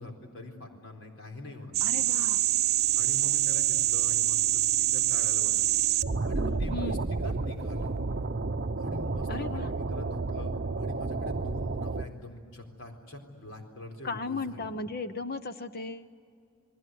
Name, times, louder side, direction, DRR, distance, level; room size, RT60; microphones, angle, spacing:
voice 1, 0.0-1.8 2.9-5.7 6.2-8.0 8.8-14.7, left 1 dB, 60° left, 3 dB, 4.2 m, -43 dB
sound 1, 1.7-12.1, right 9 dB, 45° right, 0.7 m, -28 dB
voice 2, 1.8-2.4 6.7-7.1 9.3-9.7 14.0-16.2, left 3 dB, 45° left, 11 dB, 0.8 m, -36 dB
29.5 x 20.5 x 9.3 m, 2.3 s
head